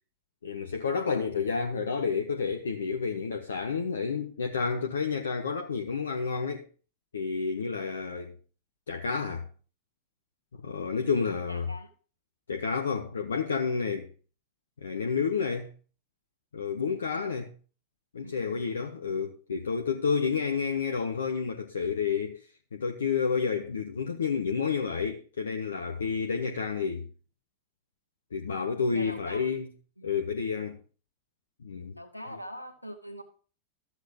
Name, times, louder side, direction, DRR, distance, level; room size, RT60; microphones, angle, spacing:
voice 1, 0.4-6.7 7.1-8.4 8.9-9.5 10.5-11.7 12.5-14.1 14.8-15.7 16.5-17.5 18.1-22.4 22.7-27.1 28.3-29.7 30.0-30.8 31.6-31.9, left 5 dB, 70° left, 1.0 m, -30 dB
voice 2, 11.2-11.9 17.1-17.3 18.2-18.6 28.9-29.5 30.0-30.1 31.9-33.2, equal, 85° left, 1.9 m, -43 dB
13.5 x 8.0 x 2.8 m
figure-of-eight pair, 90°, 0 cm